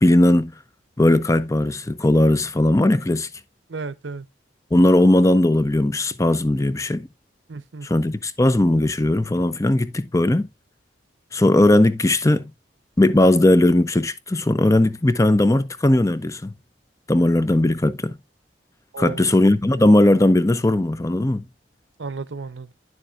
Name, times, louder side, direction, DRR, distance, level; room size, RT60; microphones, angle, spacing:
voice 1, 0.0-0.5 1.0-3.3 4.7-7.1 7.8-10.5 11.3-12.5 13.0-16.5 17.1-18.2 19.0-21.4, left 1 dB, 15° left, 0.5 m, -18 dB
voice 2, 3.7-4.3 7.5-7.9 18.9-19.3 22.0-22.7, right 4 dB, 85° right, 0.7 m, -33 dB
10.0 x 7.1 x 2.4 m
head